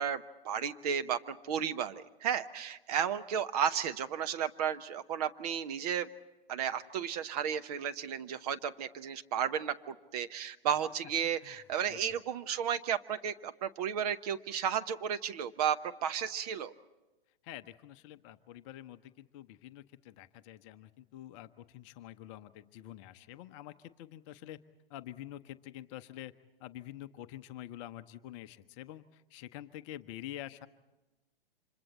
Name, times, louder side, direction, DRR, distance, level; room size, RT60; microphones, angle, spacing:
voice 1, 0.0-6.1 6.5-16.7, right 8 dB, 40° right, 10 dB, 1.0 m, -33 dB
voice 2, 17.4-24.6 24.9-26.3 26.6-30.7, left 13 dB, 30° left, 11 dB, 0.8 m, -47 dB
30.0 x 26.0 x 4.2 m, 1.1 s
figure-of-eight pair, 115°, 29 cm